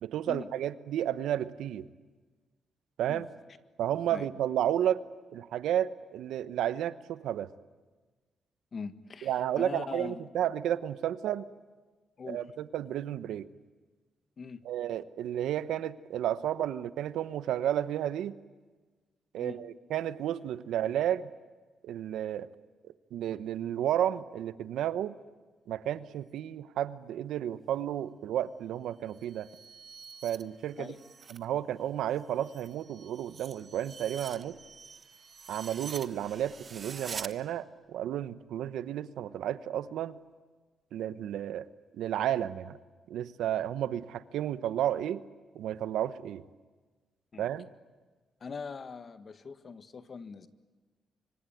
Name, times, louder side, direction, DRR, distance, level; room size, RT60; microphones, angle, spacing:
voice 1, 0.0-1.9 3.0-3.3 3.8-5.0 5.3-7.5 9.2-11.4 12.2-13.5 14.6-18.3 19.3-21.2 21.8-22.5 22.8-25.1 25.7-29.5 30.2-30.9 31.3-34.6 35.5-40.2 40.9-41.7 41.9-42.8 43.1-45.2 45.5-46.4 47.4-47.7, right 11 dB, 85° right, 14 dB, 1.0 m, -32 dB
voice 2, 8.7-10.3 12.2-12.4 14.4-14.6 19.4-19.6 30.8-31.0 47.3-47.4 48.4-50.5, left 5 dB, 45° left, 11 dB, 1.6 m, -41 dB
sound 1, 29.0-31.5 31.8-37.3, right 5 dB, 45° right, 1.1 m, -46 dB
25.5 x 25.0 x 9.3 m, 1.3 s
cardioid pair, 90°, 0 cm